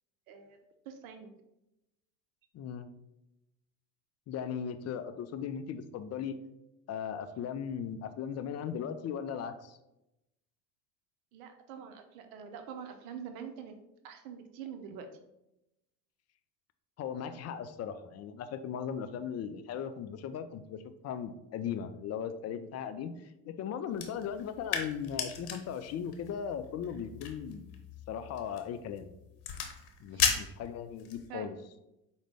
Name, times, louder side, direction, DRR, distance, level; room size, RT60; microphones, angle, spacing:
voice 1, 0.3-0.6 0.9-1.3 11.3-13.7 14.0-15.1 30.1-30.4 31.3-31.6, right 7 dB, 80° right, 7 dB, 0.6 m, -45 dB
voice 2, 2.5-2.9 4.3-6.4 6.9-9.8 17.0-27.7 28.1-29.1 30.0-31.6, left 8 dB, 40° left, 10 dB, 0.4 m, -38 dB
sound 1, 23.9-31.3, left 7 dB, 60° left, 0.8 m, -37 dB
4.8 x 2.2 x 3.4 m, 0.89 s
hypercardioid pair, 65°, 42 cm